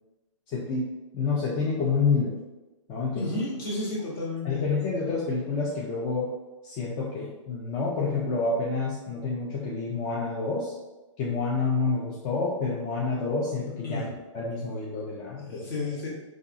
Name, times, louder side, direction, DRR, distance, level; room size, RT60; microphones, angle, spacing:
voice 1, 0.5-0.9 1.1-2.4 2.9-3.3 4.4-6.3 6.6-10.7 11.2-14.1 14.3-15.6, left 4 dB, 20° left, -5 dB, 0.4 m, -28 dB
voice 2, 3.1-4.6 13.8-14.1 15.3-16.1, left 2 dB, 45° left, -5 dB, 1.1 m, -32 dB
2.6 x 2.4 x 2.5 m, 1.1 s
hypercardioid pair, 130°, 17 cm